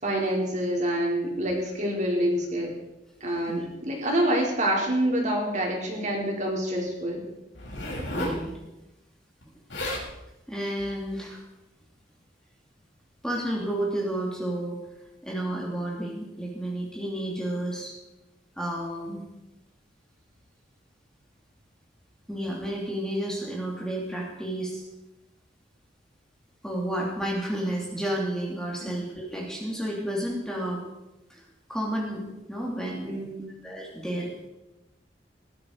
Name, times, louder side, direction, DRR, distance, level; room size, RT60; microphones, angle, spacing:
voice 1, 0.0-2.7 3.2-7.2 28.8-28.9 33.1-33.5, right 1 dB, 40° right, -1 dB, 4.2 m, -27 dB
Zipper (clothing), 7.5-8.4 9.4-9.5 9.7-10.1 10.8-11.0, left 1 dB, 90° left, 6.8 m, -32 dB
voice 2, 8.1-8.5 10.5-11.4 13.2-14.8 15.2-17.9 18.6-19.2 22.3-24.8 26.6-30.8 31.3-31.4 31.7-33.2 33.6-34.5, right 1 dB, 5° left, -3 dB, 3.0 m, -31 dB
19.0 x 13.0 x 4.8 m, 0.99 s
head